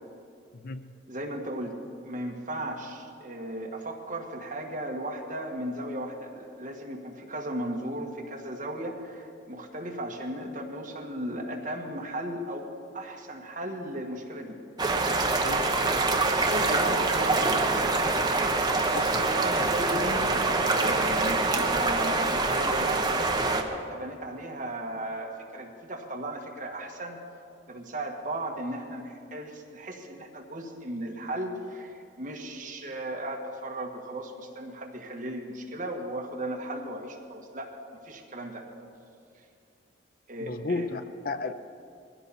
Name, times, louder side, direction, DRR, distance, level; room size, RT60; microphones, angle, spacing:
voice 1, 0.5-1.0 15.3-15.8 18.9-19.2 40.4-41.5, left 3 dB, 50° left, 0.5 m, -34 dB
voice 2, 1.1-1.8 2.0-14.6 16.2-17.9 18.9-27.2 27.7-37.7 38.0-38.7 40.3-40.9, right 1 dB, 40° right, 1.8 m, -36 dB
sound 1, 14.8-23.6, right 3 dB, 20° right, 1.0 m, -25 dB
21.0 x 16.0 x 4.3 m
head